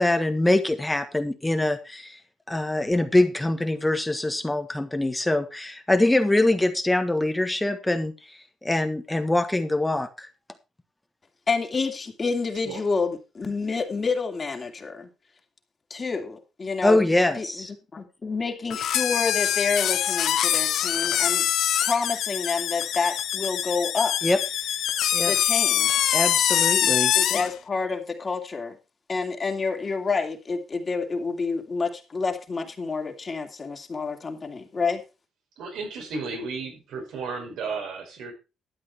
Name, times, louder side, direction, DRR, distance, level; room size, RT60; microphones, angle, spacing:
voice 1, 0.0-2.2 2.5-10.3 16.8-17.7 24.2-24.4 25.1-25.3 26.1-27.1, left 1 dB, 10° left, 7 dB, 1.5 m, -24 dB
voice 2, 11.5-15.1 15.9-17.0 17.4-21.5 21.8-24.1 25.2-25.9 26.8-28.8 29.1-35.0, left 4 dB, 35° left, 3 dB, 2.7 m, -28 dB
sound 1, 18.7-27.5, left 11 dB, 75° left, 0.5 m, -24 dB
voice 3, 35.6-38.3, right 4 dB, 80° right, 2 dB, 5.6 m, -34 dB
12.5 x 8.6 x 4.4 m, 0.30 s
cardioid pair, 90°, 0 cm